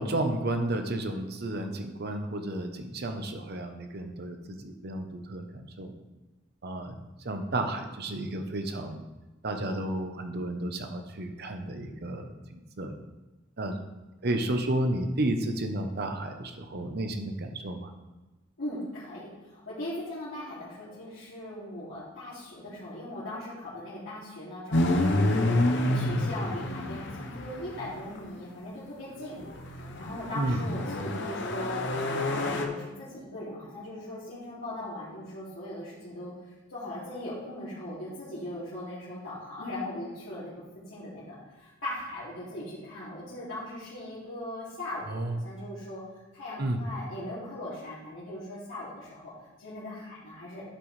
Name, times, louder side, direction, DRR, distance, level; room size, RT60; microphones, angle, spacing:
voice 1, 0.0-5.9 6.6-7.0 7.2-9.0 9.4-13.0 13.6-13.8 14.2-17.9 30.3-30.6 45.1-45.4 46.6-46.8, right 1 dB, 55° right, 6 dB, 0.9 m, -32 dB
voice 2, 18.6-25.5 25.8-36.3 36.7-40.5 40.9-46.0 46.3-49.3 49.6-50.6, left 1 dB, 80° left, -12 dB, 2.7 m, -39 dB
sound 1, 24.7-28.2 29.4-32.7, left 1 dB, 65° left, 0.9 m, -28 dB
11.5 x 6.1 x 3.3 m, 1.1 s
head